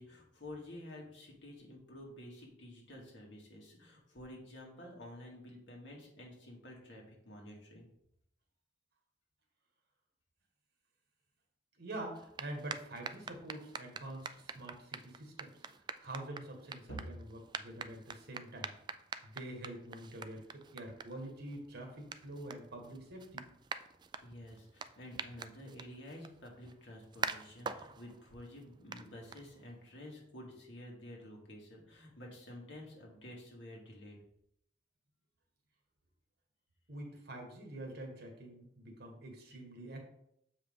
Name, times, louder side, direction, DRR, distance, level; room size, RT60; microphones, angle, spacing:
voice 1, 0.0-7.9 16.9-17.0 24.2-34.2, left 1 dB, 90° left, -1 dB, 2.0 m, -50 dB
voice 2, 11.8-15.5 16.0-18.7 19.2-23.5 36.9-40.0, right 1 dB, 60° right, 2 dB, 1.6 m, -46 dB
sound 1, 12.1-29.9, right 5 dB, 25° right, 0.3 m, -46 dB
7.3 x 4.9 x 3.6 m, 0.75 s
head